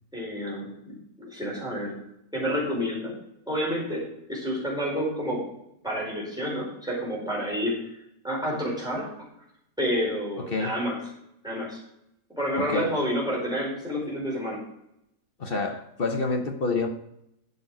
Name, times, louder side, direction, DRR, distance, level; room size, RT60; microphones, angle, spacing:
voice 1, 0.1-2.0 2.3-3.1 3.5-5.4 5.8-7.8 8.2-9.3 9.8-11.0 11.4-11.8 12.3-14.6, equal, ahead, -4 dB, 4.8 m, -29 dB
voice 2, 10.4-10.7 12.6-12.9 15.4-16.9, left 3 dB, 40° left, 5 dB, 1.1 m, -28 dB
12.0 x 7.1 x 5.0 m, 0.80 s
omnidirectional pair, 1.6 m